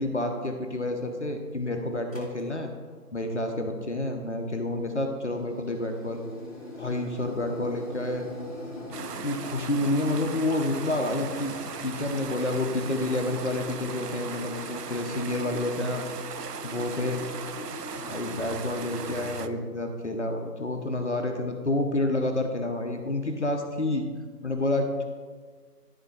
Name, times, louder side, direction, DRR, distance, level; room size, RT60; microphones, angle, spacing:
voice 1, 0.0-2.7 3.1-6.2 6.8-8.3 8.8-11.5 11.8-16.0 16.6-17.2 17.9-24.1 24.4-25.0, left 2 dB, 45° left, 4 dB, 0.9 m, -29 dB
sound 1, 2.1-2.4 4.7-19.6, left 1 dB, 20° left, 1.7 m, -42 dB
sound 2, 8.9-19.5, right 7 dB, 75° right, 0.6 m, -39 dB
12.5 x 4.2 x 4.8 m, 1.5 s
figure-of-eight pair, 160°, 47 cm